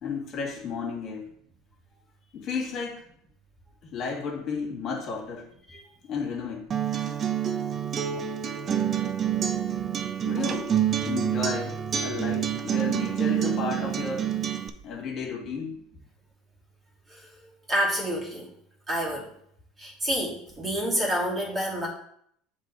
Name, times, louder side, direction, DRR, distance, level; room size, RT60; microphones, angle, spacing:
voice 1, 0.0-1.3 2.3-3.0 3.8-5.4 6.1-6.7 10.2-10.8 11.1-14.4 14.8-15.8, left 5 dB, 50° left, -2 dB, 2.4 m, -33 dB
Acoustic guitar, 6.7-14.7, right 9 dB, 35° right, 0.6 m, -27 dB
voice 2, 10.4-10.8 17.1-17.2 17.7-18.5 18.9-19.3 19.8-21.9, equal, 20° right, -3 dB, 2.5 m, -28 dB
7.3 x 3.8 x 4.2 m, 0.68 s
hypercardioid pair, 90°, 0 cm